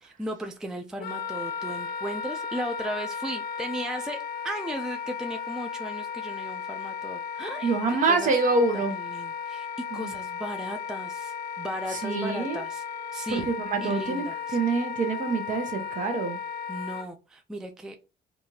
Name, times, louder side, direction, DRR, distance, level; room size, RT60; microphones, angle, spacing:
voice 1, 0.0-8.3 8.7-12.8 13.1-13.4 13.8-14.6 16.7-18.0, right 1 dB, 5° right, 0.3 m, -36 dB
Wind instrument woodwind instrument, 1.0-17.1, left 7 dB, 65° left, 0.4 m, -35 dB
voice 2, 7.6-8.9 9.9-10.1 11.9-12.6 13.3-14.3 14.5-16.4, right 4 dB, 50° right, 0.8 m, -26 dB
2.6 x 2.4 x 3.1 m
cardioid pair, 110°, 17 cm